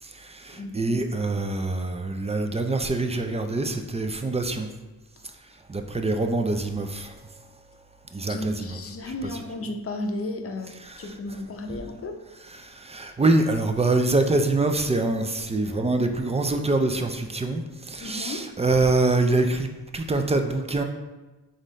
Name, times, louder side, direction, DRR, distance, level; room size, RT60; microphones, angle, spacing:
voice 1, 0.0-4.7 5.4-7.4 8.1-8.8 9.0-9.4 10.8-11.1 12.5-20.8, right 2 dB, 20° right, 6 dB, 0.4 m, -25 dB
voice 2, 0.5-1.0 8.3-12.2 18.0-18.6, left 2 dB, 40° left, 5 dB, 0.6 m, -34 dB
4.0 x 3.8 x 3.2 m, 1.2 s
cardioid pair, 70°, 36 cm